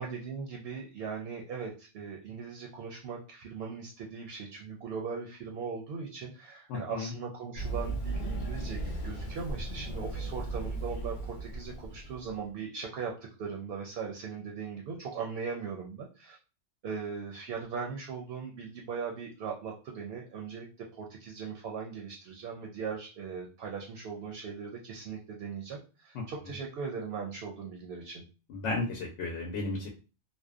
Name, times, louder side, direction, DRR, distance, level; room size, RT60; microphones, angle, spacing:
voice 1, 0.0-13.1 13.4-16.4 16.8-28.2, right 5 dB, 65° right, 1 dB, 0.7 m, -39 dB
voice 2, 6.7-7.1 28.5-29.9, left 2 dB, 80° left, -1 dB, 0.9 m, -33 dB
Run, 7.6-12.3, right 2 dB, 60° left, 0.5 m, -36 dB
2.6 x 2.1 x 2.3 m, 0.33 s
omnidirectional pair, 1.2 m